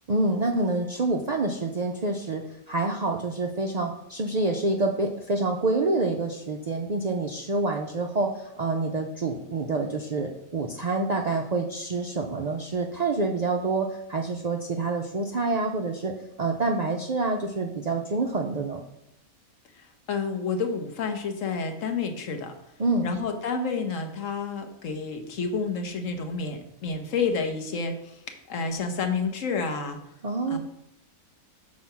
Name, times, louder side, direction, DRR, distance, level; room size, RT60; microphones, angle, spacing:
voice 1, 0.1-2.4 2.7-18.8 22.8-23.1 30.2-30.6, right 3 dB, 85° right, 2 dB, 0.3 m, -27 dB
voice 2, 20.1-22.5 23.0-28.2 28.5-30.0 30.5-30.6, left 4 dB, 65° left, 6 dB, 1.3 m, -29 dB
6.3 x 4.7 x 5.7 m, 0.80 s
omnidirectional pair, 1.5 m